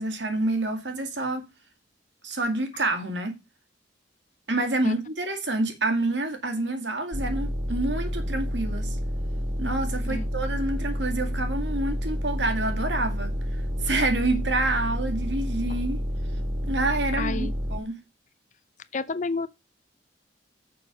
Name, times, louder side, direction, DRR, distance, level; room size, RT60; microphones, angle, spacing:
voice 1, 0.0-1.4 2.2-3.4 4.5-9.0 9.6-16.0 16.6-18.0, right 2 dB, 75° right, 2.1 m, -28 dB
sound 1, 7.1-17.8, equal, 45° right, 1.6 m, -29 dB
voice 2, 17.1-17.5 18.9-19.5, left 3 dB, 40° left, 0.6 m, -30 dB
6.9 x 6.1 x 5.1 m
head